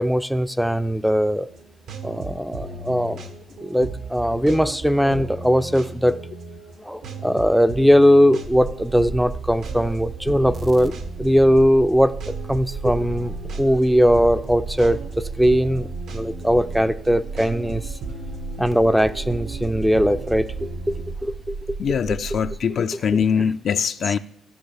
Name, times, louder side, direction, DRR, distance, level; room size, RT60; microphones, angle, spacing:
voice 1, 0.0-1.5 2.0-3.2 3.6-6.1 6.9-10.9 11.2-12.1 12.5-15.0 15.4-15.9 16.1-17.8 18.6-20.9 21.2-21.5 23.4-23.5 24.1-24.2, equal, ahead, 0.4 m, -19 dB
sound 1, 1.5-21.1, right 3 dB, 80° right, 1.1 m, -36 dB
sound 2, 8.4-22.6, right 4 dB, 45° right, 0.6 m, -35 dB
voice 2, 21.8-24.2, left 7 dB, 60° left, 0.4 m, -22 dB
14.0 x 6.2 x 3.4 m
cardioid pair, 90°, 0 cm